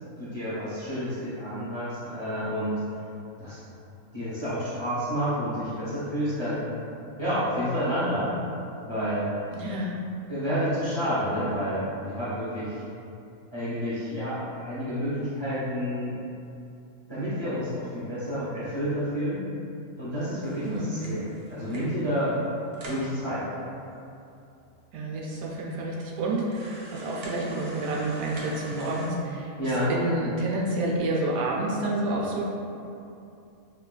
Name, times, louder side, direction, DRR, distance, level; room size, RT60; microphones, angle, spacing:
voice 1, 0.2-2.8 3.4-3.6 4.1-6.6 7.2-8.2 8.8-9.3 10.3-12.8 13.5-16.1 17.1-19.4 20.0-22.3 22.8-23.4 29.6-29.9, equal, 35° left, -11 dB, 0.4 m, -29 dB
voice 2, 9.5-9.9 20.6-21.2 22.8-23.0 24.9-32.4, right 2 dB, 90° right, -3 dB, 1.1 m, -29 dB
sound 1, 20.4-22.0 22.4-22.5 22.7-23.1 23.8-23.9 24.1-24.2 24.9-25.0 25.5-25.6 26.3-29.1, right 1 dB, 65° right, 0.6 m, -44 dB
4.5 x 2.4 x 2.2 m, 2.7 s
omnidirectional pair, 1.5 m